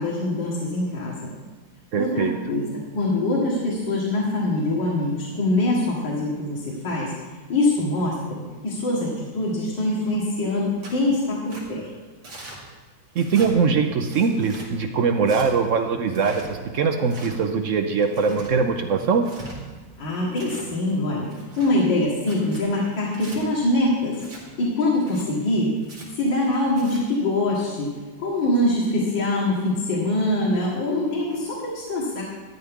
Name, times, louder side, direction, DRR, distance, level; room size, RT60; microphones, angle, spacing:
voice 1, 0.0-1.3 2.0-2.6 2.9-7.1 7.5-11.9 20.0-21.3 21.6-25.7 26.1-27.9 28.2-32.2, left 2 dB, 70° left, -5 dB, 2.4 m, -24 dB
voice 2, 1.9-2.4 13.2-19.3, right 5 dB, 70° right, 6 dB, 0.7 m, -22 dB
Tearing, 10.8-11.0 11.5-11.6 12.2-12.6 13.1-13.5 14.1-14.7 15.2-15.5 16.1-16.5 17.0-17.3 18.0-18.5 19.1-19.6 20.1-20.7 21.2-21.7 22.2-22.6 23.1-23.4 24.1-24.4 25.0-25.2 25.8-26.1 26.6-27.0, right 2 dB, 90° right, 3.3 m, -41 dB
13.5 x 11.0 x 3.6 m, 1.4 s
omnidirectional pair, 2.1 m